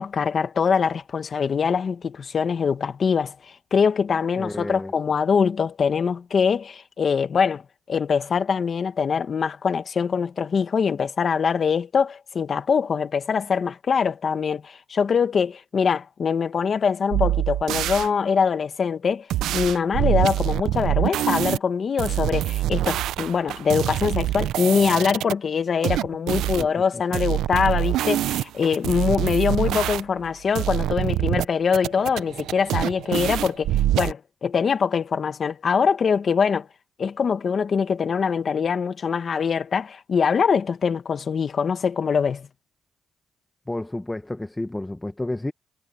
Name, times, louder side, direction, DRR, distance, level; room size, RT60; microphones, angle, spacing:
voice 1, 0.0-7.6 7.9-19.3 19.5-36.7 37.0-42.5, left 6 dB, 45° left, 1.5 m, -23 dB
voice 2, 4.4-4.9 26.6-26.7 27.1-27.2 43.7-45.5, left 1 dB, 10° left, 0.9 m, -31 dB
sound 1, 17.1-18.1 19.3-21.6 22.0-25.3 25.8-26.7 27.1-30.3 30.5-31.4 31.7-34.1, right 13 dB, 85° right, 0.5 m, -25 dB
cardioid pair, 90°, 0 cm